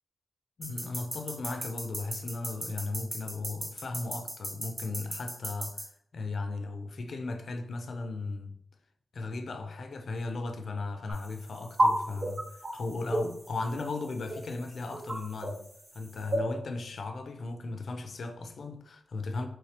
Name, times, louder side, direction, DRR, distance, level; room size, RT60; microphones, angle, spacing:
voice 1, 0.6-5.9 6.1-8.6 9.1-15.6 15.9-19.5, left 3 dB, 65° left, 0.4 m, -36 dB
sound 1, 0.6-5.9, right 1 dB, 20° right, 0.6 m, -37 dB
sound 2, 11.1-16.4, right 1 dB, 40° right, 1.0 m, -33 dB
3.2 x 3.1 x 2.8 m
wide cardioid pair, 145°, 0 cm